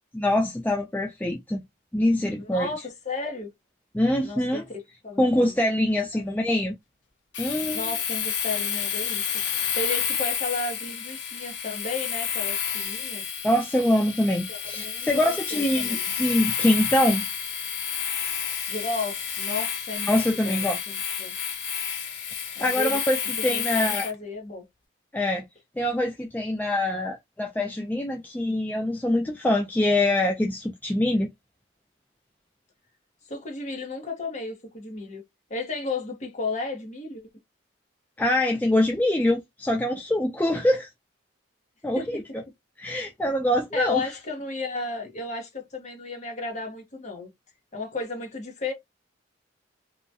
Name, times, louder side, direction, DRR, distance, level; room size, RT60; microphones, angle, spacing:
voice 1, 0.2-1.6 1.9-2.7 3.9-4.6 5.2-6.7 7.4-7.8 13.4-17.2 20.1-20.8 22.6-24.0 25.1-25.4 25.8-31.3 38.2-40.9 41.8-42.2 42.8-44.1, left 1 dB, 10° left, 0.3 m, -24 dB
voice 2, 2.4-3.5 4.2-4.6 5.0-5.6 6.1-6.3 7.7-9.2 9.7-13.3 14.5-16.1 18.7-21.3 22.6-23.0 23.5-24.6 33.3-35.2 35.5-37.2 41.9-42.1 43.7-47.3 47.7-48.7, left 3 dB, 35° left, 1.1 m, -33 dB
Domestic sounds home sounds, 7.3-24.1, left 8 dB, 65° left, 0.8 m, -30 dB
3.0 x 2.2 x 2.6 m
head